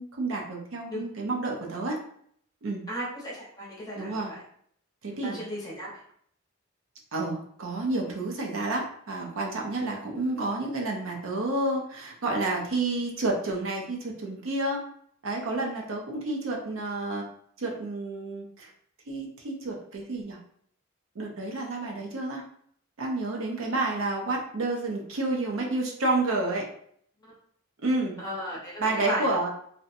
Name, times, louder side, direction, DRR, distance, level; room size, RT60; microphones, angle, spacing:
voice 1, 0.0-2.0 2.6-2.8 4.0-4.3 5.0-5.4 7.1-14.8 15.2-17.2 17.6-18.7 19.1-20.4 21.2-22.4 23.0-26.7 27.8-28.2 28.8-29.5, right 2 dB, 70° right, 0 dB, 0.5 m, -30 dB
voice 2, 2.9-4.4 5.1-5.9 27.2-27.3 28.2-29.2, equal, 20° left, -5 dB, 0.8 m, -35 dB
2.7 x 2.1 x 2.5 m, 0.64 s
head